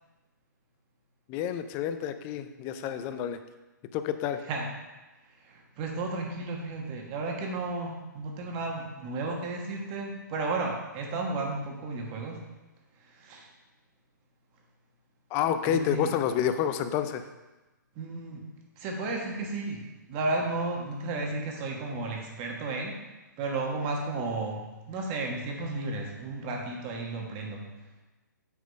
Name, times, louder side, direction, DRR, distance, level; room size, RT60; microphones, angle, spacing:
voice 1, 1.3-3.4 3.9-4.4 15.3-17.2, left 9 dB, 20° left, 10 dB, 0.4 m, -29 dB
voice 2, 5.4-12.4 13.0-13.5 15.7-16.1 17.9-18.4 18.8-19.8 20.1-23.0 23.4-27.6, right 2 dB, 30° right, 1 dB, 1.3 m, -33 dB
8.3 x 4.1 x 5.2 m, 1.1 s
hypercardioid pair, 150°, 10 cm